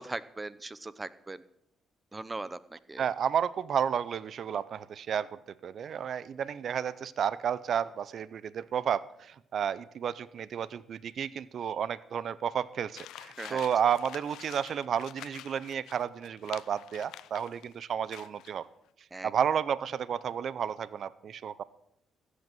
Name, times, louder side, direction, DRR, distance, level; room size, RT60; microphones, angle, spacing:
voice 1, 0.0-1.4 2.1-3.0 13.4-13.7 19.1-19.3, right 2 dB, 20° right, 17 dB, 0.7 m, -40 dB
voice 2, 3.0-5.3 5.6-18.7 19.2-21.6, right 8 dB, 60° right, 19 dB, 0.6 m, -32 dB
sound 1, 12.9-17.7 18.1-18.6, left 13 dB, 85° left, 0.5 m, -48 dB
14.5 x 8.1 x 7.7 m, 0.79 s
cardioid pair, 90°, 0 cm